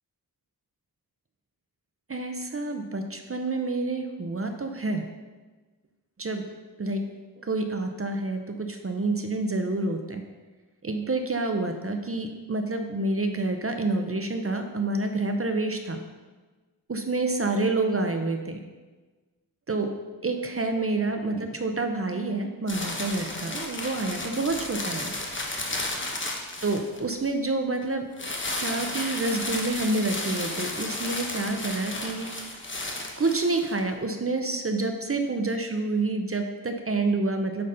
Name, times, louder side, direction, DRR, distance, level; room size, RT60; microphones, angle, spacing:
voice 1, 2.1-5.0 6.2-6.4 6.8-7.0 7.4-10.2 10.8-16.0 16.9-18.6 19.7-19.9 20.2-25.2 26.6-28.3 28.6-32.3 33.2-37.7, right 2 dB, 40° right, 5 dB, 0.6 m, -28 dB
sound 1, 22.7-27.3 28.2-33.8, left 2 dB, 30° left, 1.0 m, -33 dB
8.6 x 4.1 x 5.4 m, 1.3 s
wide cardioid pair, 85°, 37 cm